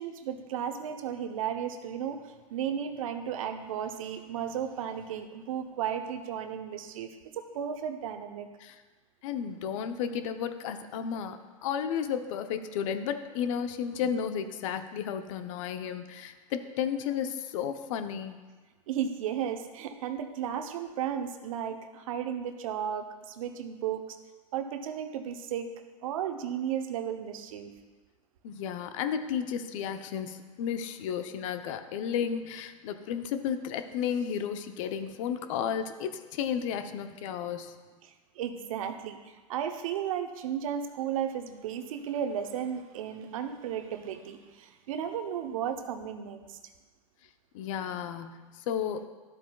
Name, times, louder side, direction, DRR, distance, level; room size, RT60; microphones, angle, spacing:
voice 1, 0.0-8.5 18.9-24.2 24.5-25.7 26.0-27.7 38.0-46.6, right 9 dB, 70° right, 8 dB, 0.8 m, -34 dB
voice 2, 9.2-18.4 28.4-37.7 47.5-49.1, left 8 dB, 65° left, 9 dB, 0.7 m, -33 dB
12.5 x 7.9 x 2.3 m, 1.3 s
hypercardioid pair, 95°, 18 cm